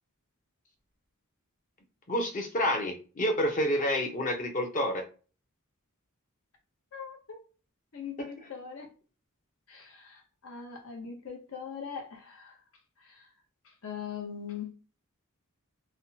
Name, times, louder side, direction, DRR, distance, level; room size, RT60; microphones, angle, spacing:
voice 1, 2.1-5.0 8.2-8.3, left 1 dB, 35° left, 0.8 m, -29 dB
voice 2, 6.9-7.4 7.9-8.9 9.7-12.5 13.0-13.2 13.8-14.7, left 7 dB, 70° left, 0.9 m, -41 dB
3.4 x 2.2 x 2.8 m
head